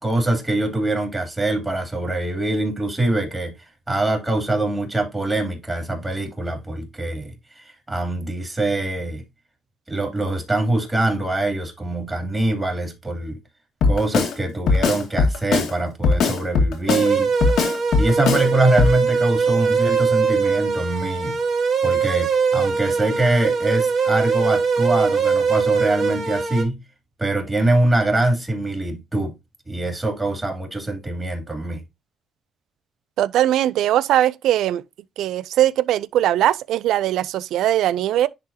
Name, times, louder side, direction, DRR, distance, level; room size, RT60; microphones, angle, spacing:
voice 1, 0.0-9.2 9.9-13.4 13.8-17.3 18.0-21.4 21.8-26.8 27.2-29.3 29.7-31.8, right 2 dB, 15° right, 2.9 m, -23 dB
Drum kit, 13.8-14.3 14.7-15.7 16.0-17.1 17.4-18.5 18.8-19.0, left 4 dB, 75° left, 1.9 m, -19 dB
sound 1, 16.9-26.6, right 5 dB, 65° right, 2.8 m, -21 dB
voice 2, 33.2-34.8 35.2-38.3, right 12 dB, 85° right, 0.4 m, -20 dB
10.5 x 3.8 x 2.8 m
cardioid pair, 90°, 0 cm